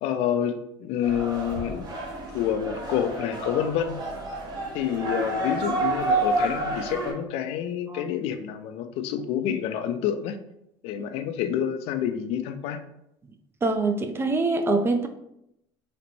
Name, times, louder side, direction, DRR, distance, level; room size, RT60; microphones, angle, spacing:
voice 1, 0.0-1.9 2.3-4.0 4.7-10.4 10.8-12.8, left 9 dB, 65° left, 9 dB, 0.4 m, -28 dB
sound 1, 1.0-7.1, right 2 dB, 35° right, 1.0 m, -29 dB
voice 2, 13.6-15.1, right 3 dB, 20° right, 7 dB, 0.4 m, -25 dB
3.9 x 2.1 x 3.0 m, 0.79 s
supercardioid pair, 105°, 11 cm